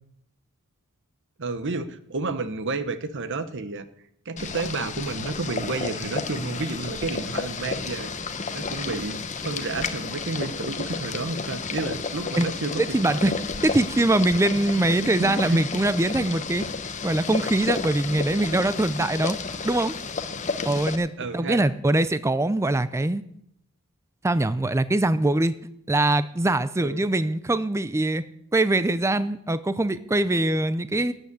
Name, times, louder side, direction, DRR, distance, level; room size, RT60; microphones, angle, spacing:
voice 1, 1.4-3.8 4.2-8.1 8.4-13.3 14.9-15.7 21.2-21.7 26.8-27.0, right 3 dB, 55° right, 12 dB, 1.0 m, -31 dB
Boiling, 4.4-21.0, left 4 dB, 35° left, 0.9 m, -32 dB
voice 2, 12.8-13.3 13.6-16.7 17.0-19.4 19.6-19.9 20.6-23.2 24.2-25.5 25.9-28.2 28.5-31.1, right 2 dB, 10° right, 14 dB, 0.4 m, -23 dB
13.0 x 8.0 x 8.5 m, 0.75 s
head